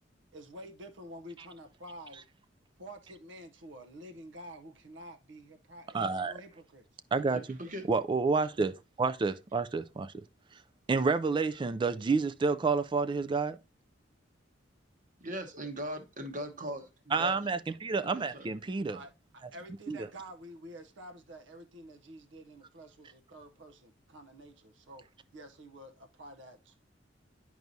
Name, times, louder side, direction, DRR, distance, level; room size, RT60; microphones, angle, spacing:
voice 1, 0.3-2.2 2.8-6.9 18.9-25.0 25.3-26.8, equal, 70° right, 0.7 m, -49 dB
voice 2, 5.9-6.3 7.1-7.4 7.9-10.1 10.9-13.6 17.1-19.0 19.9-20.0, right 4 dB, 25° right, 0.3 m, -29 dB
voice 3, 7.3-7.8 15.2-17.3 18.1-18.5, equal, 45° right, 1.1 m, -39 dB
10.5 x 4.6 x 2.7 m
head